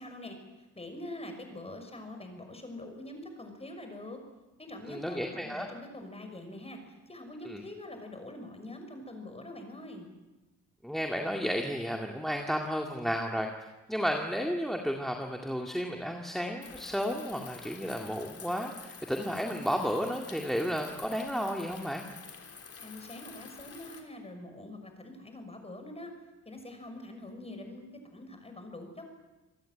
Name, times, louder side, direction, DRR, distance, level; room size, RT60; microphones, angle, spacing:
voice 1, 0.0-4.2 4.6-10.1 22.8-26.1 26.4-29.0, left 1 dB, 20° left, 5 dB, 6.2 m, -44 dB
voice 2, 4.9-5.7 7.4-7.6 10.8-13.5 13.9-22.0, equal, ahead, 2 dB, 2.2 m, -32 dB
sound 1, 16.6-24.0, left 5 dB, 50° left, 3.7 m, -48 dB
27.0 x 18.0 x 9.2 m, 1.1 s
cardioid pair, 105°, 30 cm